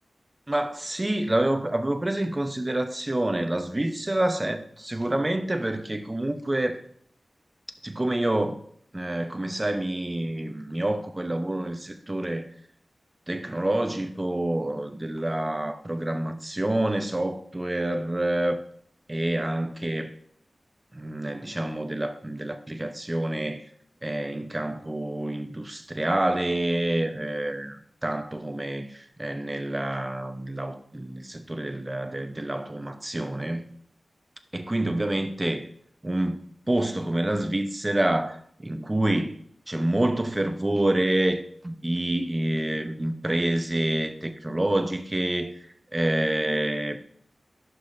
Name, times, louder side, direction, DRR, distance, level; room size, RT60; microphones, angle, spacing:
voice 1, 0.5-6.8 7.8-8.6 8.9-12.5 13.3-18.6 19.1-20.1 20.9-23.6 24.0-33.7 34.5-35.7 36.0-36.4 36.7-39.4 39.7-45.5 45.9-47.0, right 1 dB, 25° right, 0.9 m, -27 dB
11.5 x 6.3 x 2.7 m
cardioid pair, 55°, 0 cm